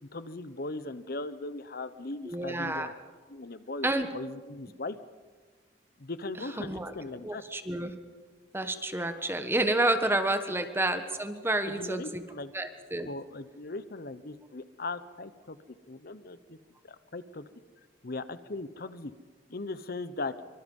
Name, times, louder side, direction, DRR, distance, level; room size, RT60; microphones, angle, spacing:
voice 1, 0.1-3.0 3.3-5.0 6.0-7.4 11.7-12.5 13.0-15.6 15.9-16.6 16.8-17.4 18.0-19.1 19.5-20.3, left 2 dB, 60° left, 13 dB, 1.0 m, -39 dB
voice 2, 2.2-2.9 3.8-4.1 6.6-6.9 7.2-7.9 8.5-12.3 12.5-13.1, right 1 dB, 15° right, 8 dB, 1.3 m, -29 dB
24.5 x 24.5 x 5.5 m, 1.5 s
head